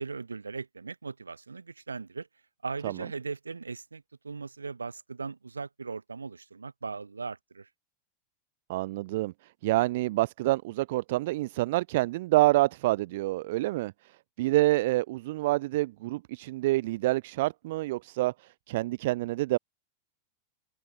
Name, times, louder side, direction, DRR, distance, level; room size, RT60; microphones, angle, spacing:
voice 1, 0.0-2.3 2.6-7.7, right 4 dB, 75° right, 1.7 m, -38 dB
voice 2, 8.7-9.3 9.6-13.9 14.4-18.3 18.7-19.6, right 18 dB, 50° right, 0.8 m, -27 dB
open air
figure-of-eight pair, 90°, 0 cm